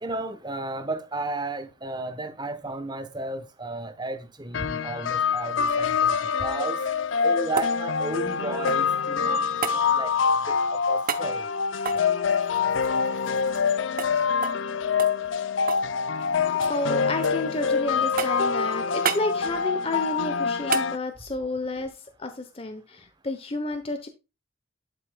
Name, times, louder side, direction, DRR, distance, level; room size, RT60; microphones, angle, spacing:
voice 1, 0.0-6.2 6.4-6.8 7.2-9.4 9.7-10.1 10.5-11.5, right 2 dB, 20° right, 1.0 m, -33 dB
sound 1, 4.5-21.0, left 6 dB, 75° left, 0.6 m, -25 dB
sound 2, 6.9-9.0 9.6-9.8 11.0-11.3 11.8-13.7 14.0-14.1 14.4-14.6 15.0-15.9 16.2-16.8 17.2-17.7 18.2-18.5 19.0-19.3 20.7-20.9 23.3-23.4, right 6 dB, 45° right, 0.8 m, -32 dB
voice 2, 16.4-21.9 22.2-24.1, left 2 dB, 30° left, 0.9 m, -31 dB
11.5 x 5.6 x 2.3 m
head